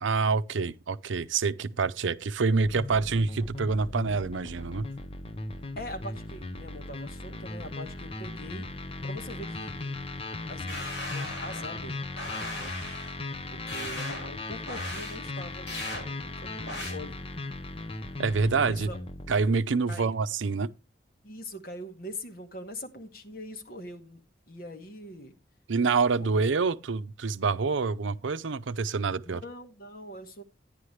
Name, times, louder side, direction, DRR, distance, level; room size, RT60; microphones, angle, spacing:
voice 1, 0.0-4.9 18.2-18.9 19.3-20.7 25.7-29.4, right 4 dB, 85° right, 0.6 m, -27 dB
sound 1, 2.6-19.4, left 2 dB, 30° left, 0.8 m, -38 dB
voice 2, 5.8-8.7 9.0-9.9 10.4-12.0 12.6-12.7 13.5-17.2 18.6-19.0 19.9-20.2 21.2-25.4 26.2-26.5 29.2-30.4, left 1 dB, 50° left, 1.8 m, -42 dB
sound 2, 10.7-11.8 12.2-13.1 13.7-14.3 14.7-15.2 15.7-16.0 16.7-16.9, left 1 dB, 65° left, 5.4 m, -38 dB
11.5 x 10.0 x 3.2 m
head